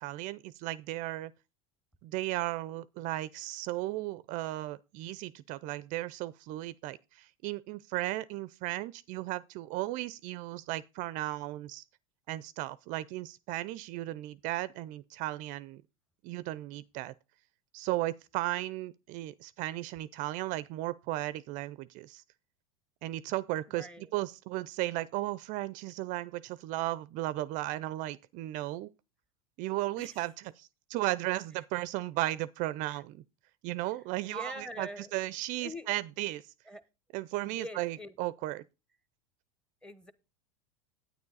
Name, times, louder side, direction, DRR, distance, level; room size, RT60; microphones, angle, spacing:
voice 1, 0.0-1.3 2.0-11.8 12.3-15.8 16.2-17.1 17.7-22.2 23.0-28.9 29.6-33.2 33.6-36.5 37.1-38.6, right 17 dB, 50° right, 0.4 m, -35 dB
voice 2, 23.7-24.2 30.0-30.3 32.9-33.0 34.2-35.1 35.6-35.9 36.6-36.8 37.4-38.1 39.8-40.1, left 1 dB, 5° left, 1.0 m, -44 dB
9.7 x 9.3 x 4.0 m
supercardioid pair, 120°, 17 cm